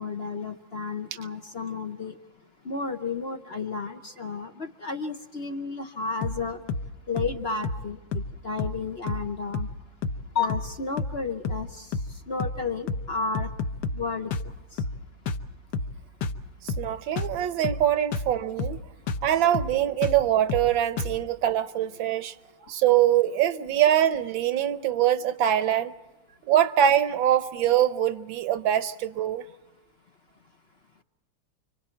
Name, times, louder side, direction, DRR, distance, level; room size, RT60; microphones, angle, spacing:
voice 1, 0.0-2.1 2.6-6.6 7.1-9.7 10.3-11.9 12.3-13.5 13.9-14.3, left 4 dB, 45° left, 0.8 m, -32 dB
sound 1, 6.2-6.4 6.7-6.9 7.2-7.4 7.6-8.3 8.6-8.8 9.1-9.3 9.5-9.8 10.0-10.2 10.5-10.7 11.0-11.2 11.5-11.7 11.9-12.1 12.4-12.6 12.9-13.1 13.4-14.1 14.3-14.5 14.8-15.0 15.3-15.5 15.7-16.0 16.2-16.4 16.7-16.9 17.2-17.4 17.6-17.9 18.1-18.3 18.6-18.8 19.1-19.3 19.5-19.8 20.0-20.2 20.5-20.7 21.0-21.2, left 3 dB, 65° left, 1.4 m, -30 dB
voice 2, 16.6-18.8 19.2-22.3 22.6-25.9 26.5-29.5, right 11 dB, 75° right, 1.6 m, -23 dB
29.5 x 25.0 x 4.5 m
omnidirectional pair, 2.2 m